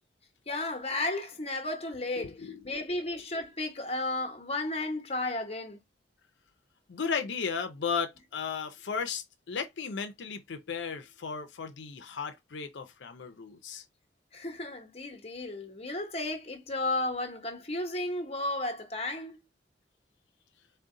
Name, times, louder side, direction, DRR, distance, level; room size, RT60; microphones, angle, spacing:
voice 1, 0.5-2.4 2.6-5.8 14.3-19.4, left 2 dB, 35° left, 0.9 m, -33 dB
voice 2, 2.2-2.6 6.9-13.8, left 6 dB, 85° left, 0.5 m, -35 dB
3.8 x 2.2 x 3.7 m
head